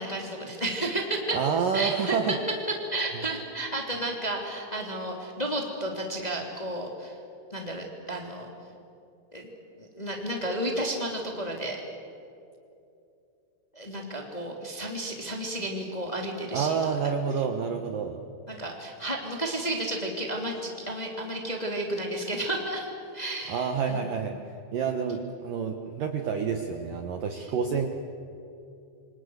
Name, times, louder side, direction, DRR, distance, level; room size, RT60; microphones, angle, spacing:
voice 1, 0.0-1.4 1.7-2.2 2.9-7.2 7.5-8.5 9.3-9.5 9.8-11.8 13.7-17.1 18.5-24.2 27.4-27.5, right 1 dB, 10° left, 1 dB, 2.4 m, -32 dB
voice 2, 1.3-2.4 16.5-18.2 23.5-24.3 24.7-27.9, right 6 dB, 65° right, 5 dB, 2.4 m, -28 dB
28.5 x 25.0 x 8.1 m, 2.7 s
omnidirectional pair, 5.4 m